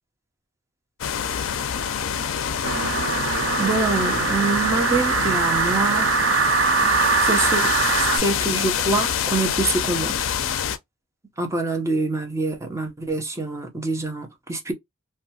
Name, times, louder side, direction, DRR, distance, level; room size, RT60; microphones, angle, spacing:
sound 1, 1.0-10.8, left 8 dB, 70° left, 0.4 m, -26 dB
sound 2, 2.6-8.2, right 5 dB, 65° right, 0.6 m, -22 dB
voice 1, 3.6-6.1 7.2-10.2 11.4-14.7, right 3 dB, 15° right, 0.7 m, -25 dB
2.7 x 2.2 x 2.7 m
head